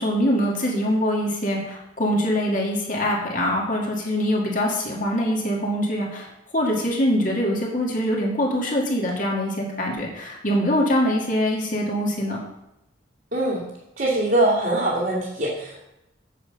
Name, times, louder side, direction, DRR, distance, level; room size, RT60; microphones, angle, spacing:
voice 1, 0.0-6.3 6.5-12.4, equal, 40° left, -2 dB, 2.0 m, -23 dB
voice 2, 13.3-13.6 14.0-15.8, right 1 dB, 55° right, -8 dB, 2.2 m, -22 dB
7.6 x 7.6 x 5.4 m, 0.87 s
head